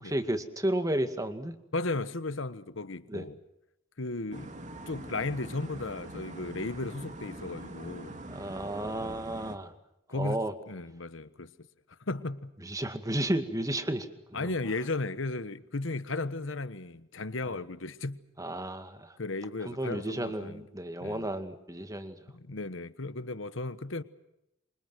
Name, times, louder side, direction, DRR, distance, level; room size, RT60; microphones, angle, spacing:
voice 1, 0.0-1.6 3.1-3.3 8.3-9.7 10.1-10.5 12.6-14.5 18.4-19.2 19.7-22.2, right 1 dB, 15° right, 2.1 m, -33 dB
voice 2, 1.7-3.4 4.0-4.5 4.9-8.2 9.0-9.2 10.1-10.4 10.7-11.5 12.0-12.5 14.3-18.2 19.2-20.6 21.0-21.3 22.3-24.0, left 2 dB, 70° left, 1.3 m, -35 dB
sound 1, 4.3-9.6, right 1 dB, 40° right, 2.8 m, -43 dB
27.5 x 26.0 x 6.3 m
head